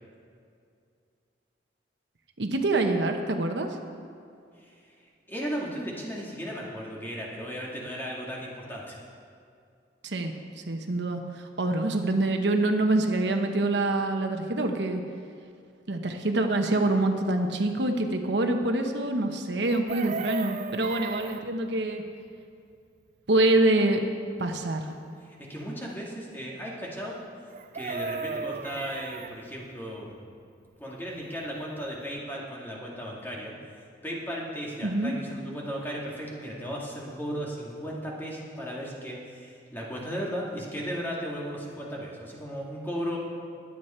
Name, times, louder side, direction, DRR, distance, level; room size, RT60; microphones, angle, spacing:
voice 1, 2.4-3.7 10.0-10.3 10.7-15.0 15.9-22.0 23.3-24.0 24.4-24.9 34.8-35.1, right 2 dB, 70° right, 5 dB, 1.0 m, -25 dB
voice 2, 5.3-9.0 25.2-27.2 27.7-30.2 30.8-43.2, equal, 10° left, -4 dB, 2.3 m, -36 dB
Chicken rooster, 19.6-21.5 27.5-29.3 31.6-31.7 31.9-32.2, right 5 dB, 40° right, 0.3 m, -35 dB
21.5 x 8.2 x 4.4 m, 2.4 s
head